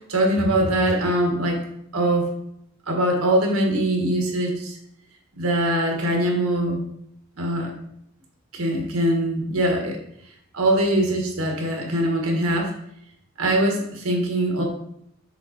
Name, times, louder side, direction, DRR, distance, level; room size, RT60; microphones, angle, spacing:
voice 1, 0.1-1.6 1.9-2.3 2.9-4.8 5.4-6.8 7.4-7.7 8.5-10.0 10.5-12.7 13.4-14.6, right 1 dB, 80° right, 1 dB, 1.5 m, -22 dB
6.9 x 3.7 x 4.2 m, 0.73 s
head